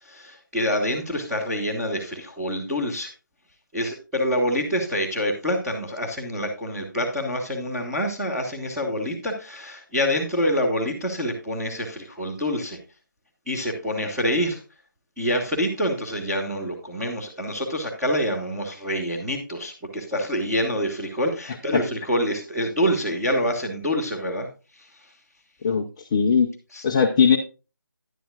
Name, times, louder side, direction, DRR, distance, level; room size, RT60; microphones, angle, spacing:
voice 1, 0.0-3.1 3.7-12.8 13.5-14.6 15.2-24.5 24.8-24.9 26.7-26.8, equal, 5° right, -7 dB, 1.4 m, -26 dB
voice 2, 26.1-26.5 26.8-27.4, left 6 dB, 15° left, 1 dB, 0.5 m, -18 dB
11.0 x 10.5 x 2.4 m, 0.31 s
figure-of-eight pair, 155°, 12 cm